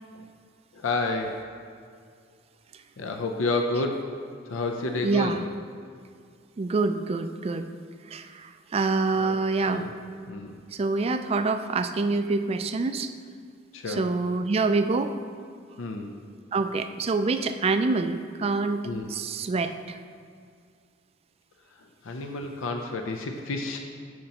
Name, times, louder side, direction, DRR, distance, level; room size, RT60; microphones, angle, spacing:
voice 1, 0.7-1.4 3.0-4.1 4.5-5.4 9.2-9.3 9.6-9.9 10.3-10.6 13.7-14.0 15.8-16.1 18.8-19.1 22.0-23.8, left 2 dB, 75° left, 4 dB, 0.5 m, -30 dB
voice 2, 5.0-5.4 6.6-7.7 8.1-9.9 10.7-13.1 13.9-15.2 16.5-20.0, right 3 dB, 30° right, 9 dB, 0.3 m, -26 dB
12.5 x 5.2 x 2.9 m, 2.2 s
head